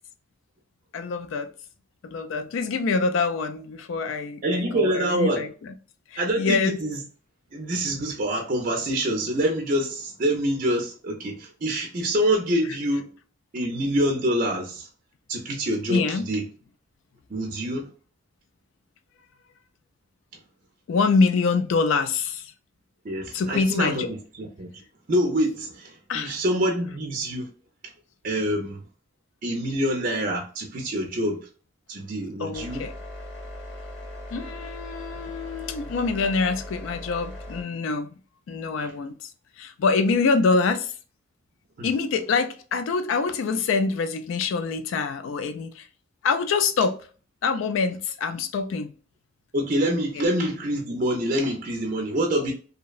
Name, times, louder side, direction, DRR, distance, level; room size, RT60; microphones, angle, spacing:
voice 1, 0.9-1.5 2.0-5.7 6.1-6.8 15.9-16.3 20.9-22.5 23.3-24.1 26.1-26.4 32.4-32.9 34.3-38.1 38.5-39.3 39.6-40.9 41.8-45.9 46.2-47.0 47.4-48.9 50.2-50.3, left 4 dB, 90° left, 0.3 m, -25 dB
voice 2, 4.4-5.4 6.2-7.0 7.5-13.1 13.5-14.9 15.3-16.4 17.3-17.9 23.0-24.7 25.1-27.5 28.2-28.8 29.4-31.5 31.9-32.8 38.8-38.9 41.8-41.9 49.5-52.5, right 1 dB, 45° right, 0.4 m, -26 dB
sound 1, 32.5-37.6, left 1 dB, 60° left, 0.8 m, -39 dB
2.7 x 2.0 x 2.3 m
head